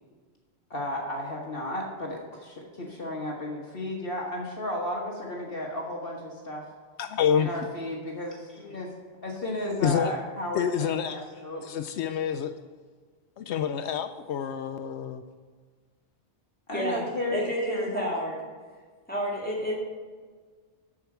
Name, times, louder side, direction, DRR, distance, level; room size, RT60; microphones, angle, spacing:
voice 1, 0.7-6.7 7.4-8.9 9.2-11.6 16.7-18.0, left 1 dB, 55° left, -2 dB, 1.5 m, -34 dB
voice 2, 7.0-7.5 9.8-10.1 10.5-11.3 11.6-12.5 13.4-15.2, left 8 dB, 80° left, 9 dB, 0.9 m, -27 dB
voice 3, 17.3-18.4 19.1-19.7, equal, 10° left, -5 dB, 2.2 m, -29 dB
13.5 x 4.9 x 5.9 m, 1.5 s
omnidirectional pair, 1.1 m